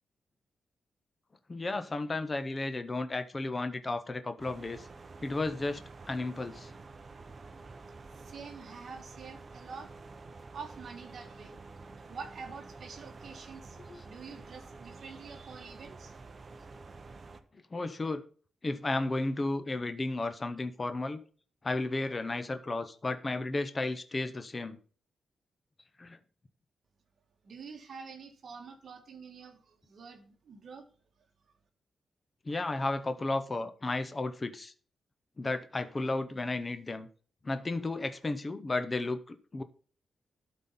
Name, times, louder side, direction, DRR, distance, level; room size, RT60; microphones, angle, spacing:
voice 1, 1.5-4.9 5.2-5.8 6.1-6.7 13.9-14.1 17.7-18.2 18.6-21.2 21.6-24.8 26.0-26.2 32.5-34.7 35.4-37.1 37.4-39.6, left 2 dB, 20° left, 0.6 m, -33 dB
sound 1, 4.4-17.4, right 3 dB, 30° right, 0.7 m, -49 dB
voice 2, 8.1-9.9 10.5-11.6 12.1-13.8 14.0-16.4 27.4-30.9, right 5 dB, 50° right, 1.4 m, -47 dB
12.0 x 4.1 x 5.5 m
wide cardioid pair, 175°, 0 cm